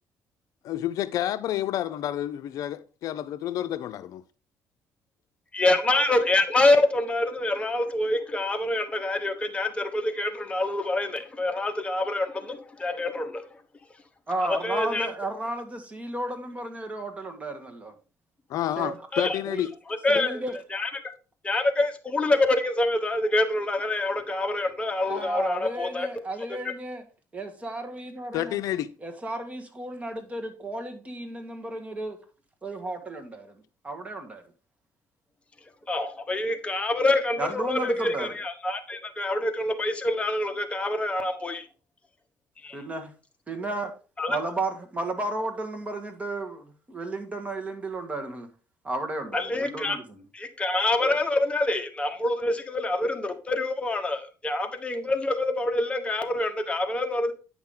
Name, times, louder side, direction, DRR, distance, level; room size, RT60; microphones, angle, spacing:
voice 1, 0.6-4.1 18.5-19.7 28.3-28.9, left 12 dB, 65° left, 0.5 m, -29 dB
voice 2, 5.5-13.4 14.4-15.1 19.1-19.4 20.0-20.4 20.7-21.1 21.4-26.1 35.9-41.7 42.6-42.8 44.2-44.4 49.3-50.0 50.3-57.3, left 2 dB, 20° left, 1.2 m, -26 dB
voice 3, 14.3-17.9 18.8-18.9 19.4-19.6 20.1-20.6 25.1-27.0 27.3-28.6 29.0-32.2 32.6-33.5 33.8-34.4 37.4-38.3 42.7-43.1 43.5-43.9 44.3-48.5 48.8-50.2, right 2 dB, 20° right, 1.7 m, -33 dB
9.5 x 6.0 x 3.8 m
cardioid pair, 120°, 6 cm